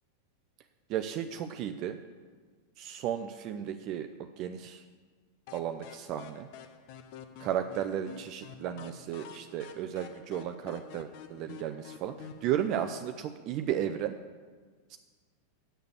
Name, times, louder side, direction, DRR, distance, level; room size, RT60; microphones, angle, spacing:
voice 1, 0.9-2.0 2.8-4.1 4.4-4.8 5.5-6.5 7.4-12.1 12.4-14.1 14.9-15.0, right 10 dB, 40° right, 7 dB, 0.4 m, -34 dB
sound 1, 5.5-13.0, left 7 dB, 45° left, 0.7 m, -49 dB
8.9 x 6.7 x 8.0 m, 1.5 s
figure-of-eight pair, 90°, 0 cm